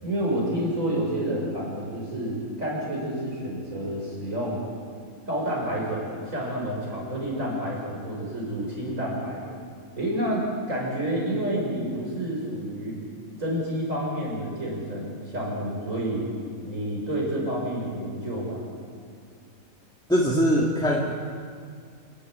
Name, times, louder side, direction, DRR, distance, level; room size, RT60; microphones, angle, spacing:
voice 1, 0.0-4.6 5.3-9.4 10.0-13.0 13.4-16.3 16.6-18.6, right 1 dB, 60° right, -3 dB, 6.8 m, -29 dB
voice 2, 20.1-21.1, equal, 5° left, -3 dB, 2.0 m, -22 dB
27.5 x 13.0 x 9.7 m, 2.1 s
omnidirectional pair, 1.5 m